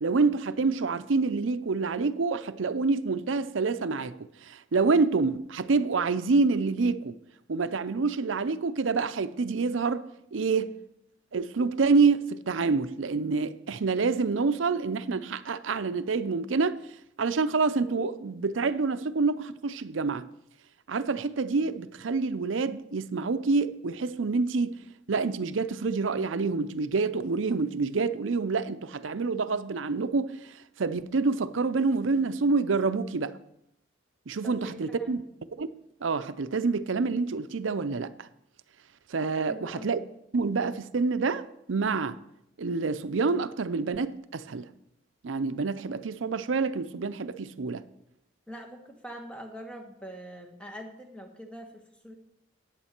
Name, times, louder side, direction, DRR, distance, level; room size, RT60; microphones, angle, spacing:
voice 1, 0.0-7.2 7.5-10.7 11.3-16.8 17.2-20.3 20.9-24.8 25.1-30.4 30.8-33.3 34.3-35.2 35.6-35.7 36.0-38.3 39.1-40.0 40.3-42.2 42.6-44.7 45.2-47.8, right 4 dB, 90° right, 0.6 m, -27 dB
voice 2, 34.4-35.2 39.5-39.9 48.5-52.1, equal, 5° left, 1.3 m, -43 dB
13.5 x 9.2 x 4.4 m
head